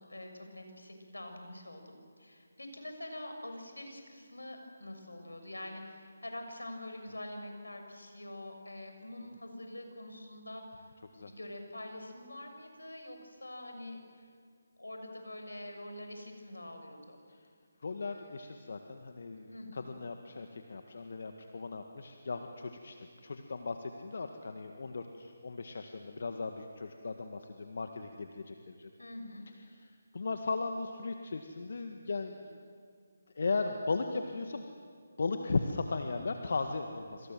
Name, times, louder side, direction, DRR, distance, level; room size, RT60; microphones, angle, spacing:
voice 1, 0.0-10.9 11.2-14.3 14.8-17.2 19.5-19.9 29.0-29.4, left 1 dB, 85° left, 5 dB, 6.3 m, -45 dB
voice 2, 17.8-28.9 30.1-32.6 33.4-34.6 35.2-37.3, left 3 dB, 60° left, 6 dB, 1.9 m, -37 dB
27.0 x 27.0 x 7.8 m, 2.1 s
figure-of-eight pair, 150°, 0 cm